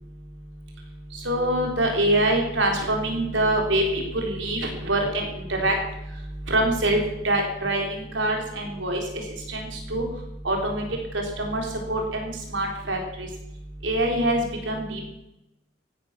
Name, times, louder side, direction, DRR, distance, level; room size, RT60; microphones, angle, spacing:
voice 1, 1.2-5.7 6.5-7.0 7.2-9.0 9.5-10.0 10.4-10.8 11.1-13.3 13.8-15.1, right 1 dB, 85° right, 1 dB, 4.2 m, -25 dB
16.0 x 12.5 x 6.0 m, 0.89 s
head